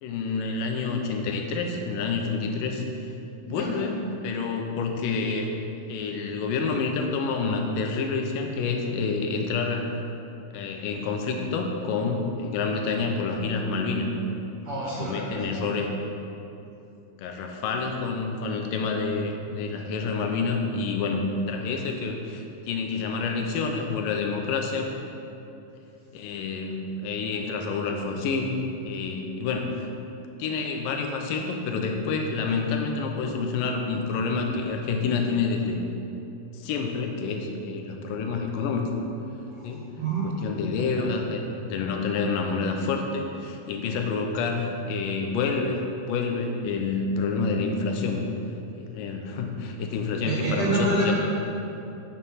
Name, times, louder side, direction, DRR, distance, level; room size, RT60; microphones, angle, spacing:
voice 1, 0.0-2.8 3.4-5.5 5.9-9.9 10.5-14.1 15.0-15.9 17.2-24.9 26.1-28.6 28.8-29.9 30.4-35.8 36.5-38.9 39.6-39.9 40.2-48.2 48.7-51.1, left 4 dB, 80° left, 3 dB, 2.5 m, -28 dB
voice 2, 14.6-15.6 39.5-40.2 50.2-51.1, right 2 dB, 45° right, -8 dB, 2.4 m, -28 dB
8.6 x 7.4 x 5.7 m, 2.8 s
omnidirectional pair, 3.9 m